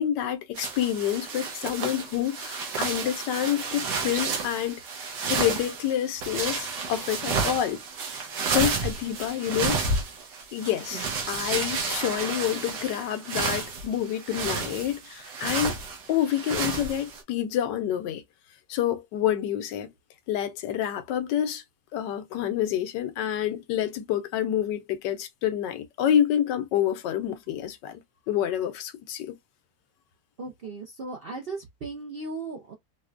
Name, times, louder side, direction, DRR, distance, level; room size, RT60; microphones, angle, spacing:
voice 1, 0.0-7.8 8.5-9.8 10.5-15.8 16.1-18.2 18.7-19.9 20.3-21.6 21.9-28.0 28.3-29.3, left 10 dB, 90° left, 1.3 m, -28 dB
sound 1, 0.6-17.2, right 4 dB, 80° right, 1.5 m, -31 dB
voice 2, 30.4-32.7, right 3 dB, 60° right, 0.6 m, -37 dB
4.6 x 2.1 x 2.4 m
omnidirectional pair, 1.8 m